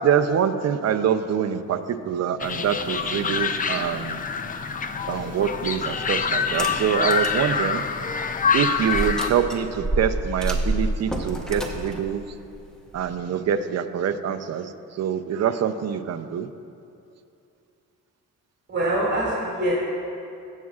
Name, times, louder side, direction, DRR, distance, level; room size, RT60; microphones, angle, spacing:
voice 1, 0.0-1.8 2.1-4.2 5.1-7.8 8.5-12.2 12.9-14.6 15.0-16.5, right 8 dB, 50° right, 9 dB, 0.5 m, -25 dB
sound 1, 2.4-9.3, left 5 dB, 25° left, 0.4 m, -26 dB
sound 2, 6.4-7.4 7.9-8.0 8.9-13.1, right 1 dB, ahead, 0.8 m, -28 dB
voice 2, 18.7-19.7, right 1 dB, 30° right, -6 dB, 2.3 m, -24 dB
20.0 x 7.4 x 2.4 m, 2.6 s
cardioid pair, 120°, 34 cm